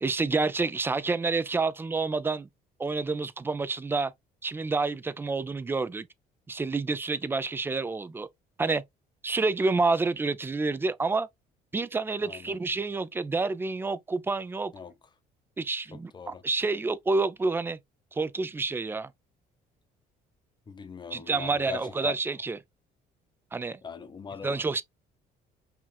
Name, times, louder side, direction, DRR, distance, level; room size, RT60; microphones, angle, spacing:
voice 1, 0.0-2.5 2.8-4.1 4.4-6.1 6.5-8.3 8.6-8.8 9.2-11.3 11.7-14.7 15.6-17.8 18.1-19.1 21.1-22.6 23.5-23.8 24.4-24.8, right 3 dB, 15° right, 0.3 m, -28 dB
voice 2, 12.2-12.6 14.7-14.9 15.9-16.4 20.7-22.1 23.8-24.6, left 6 dB, 25° left, 0.7 m, -41 dB
5.7 x 2.4 x 2.2 m
cardioid pair, 110°, 17 cm